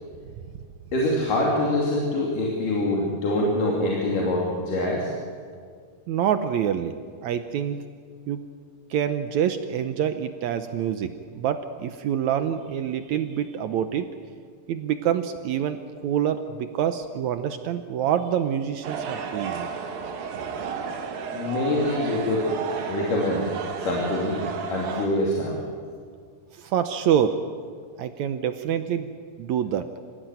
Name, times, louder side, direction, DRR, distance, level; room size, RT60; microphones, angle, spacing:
voice 1, 0.9-5.1 21.3-22.5 22.9-23.5 23.8-24.4 24.7-25.6, left 1 dB, 70° left, -3 dB, 4.4 m, -24 dB
voice 2, 6.1-6.9 7.2-7.8 8.3-8.4 8.9-14.1 14.7-19.7 26.5-27.4 28.0-29.1 29.4-29.9, right 9 dB, 75° right, 9 dB, 1.8 m, -26 dB
sound 1, 18.8-25.1, right 6 dB, 90° right, 3.4 m, -32 dB
26.5 x 16.5 x 9.2 m, 2.1 s
omnidirectional pair, 3.9 m